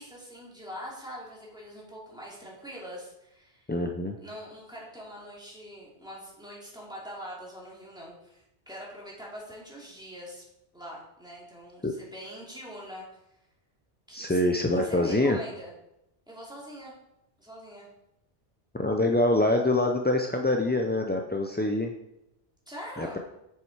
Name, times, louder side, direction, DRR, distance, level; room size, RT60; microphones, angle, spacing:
voice 1, 0.0-3.7 4.2-10.4 10.7-13.0 14.1-14.4 14.7-15.7 16.3-16.9 17.4-17.9 22.7-23.2, equal, 5° right, -5 dB, 2.8 m, -43 dB
voice 2, 3.7-4.2 11.8-11.9 14.1-15.4 18.7-21.9 23.0-23.2, left 1 dB, 15° left, 2 dB, 0.3 m, -25 dB
7.4 x 6.8 x 4.7 m, 0.86 s
omnidirectional pair, 1.0 m